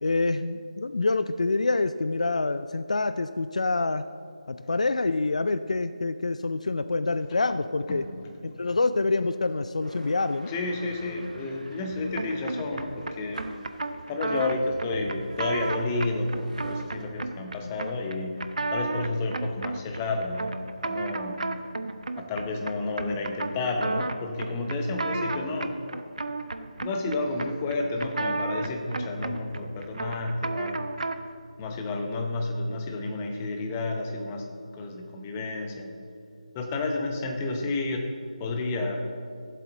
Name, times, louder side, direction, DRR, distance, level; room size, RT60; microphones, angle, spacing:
voice 1, 0.0-4.0 4.5-8.0 8.4-10.5, left 3 dB, 60° left, 12 dB, 0.4 m, -26 dB
voice 2, 7.9-8.8 10.5-13.5 14.1-21.5 22.2-25.7 26.8-30.8 31.6-34.5 34.7-35.9 36.5-38.1 38.4-39.0, left 2 dB, 15° left, 3 dB, 0.7 m, -31 dB
sound 1, 9.8-17.0, right 1 dB, 80° right, 1.3 m, -46 dB
sound 2, 12.1-31.3, right 3 dB, 60° right, 0.6 m, -34 dB
14.5 x 7.6 x 3.9 m, 2.3 s
figure-of-eight pair, 155°, 4 cm